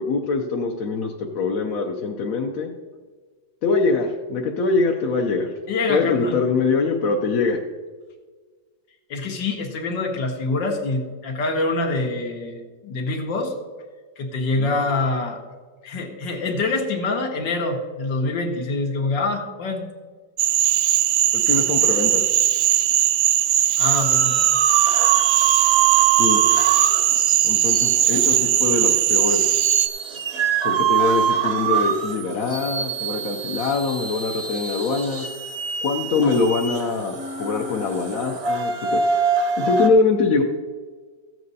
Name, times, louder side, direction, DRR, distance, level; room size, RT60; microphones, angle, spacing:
voice 1, 0.0-2.7 3.6-5.5 5.9-7.6 14.6-14.7 21.3-22.4 26.2-26.4 27.4-29.5 30.6-35.2 35.8-39.0 39.6-40.4, left 4 dB, 60° left, 0 dB, 1.1 m, -23 dB
voice 2, 5.7-6.4 9.1-13.5 14.2-15.4 15.8-19.9 23.8-24.5, left 3 dB, 80° left, 2 dB, 2.0 m, -25 dB
Cricket / Frog, 20.4-29.9, right 11 dB, 75° right, 1.1 m, -19 dB
sound 1, 24.0-39.9, right 7 dB, 45° right, 0.9 m, -25 dB
14.0 x 7.7 x 4.1 m, 1.5 s
omnidirectional pair, 2.0 m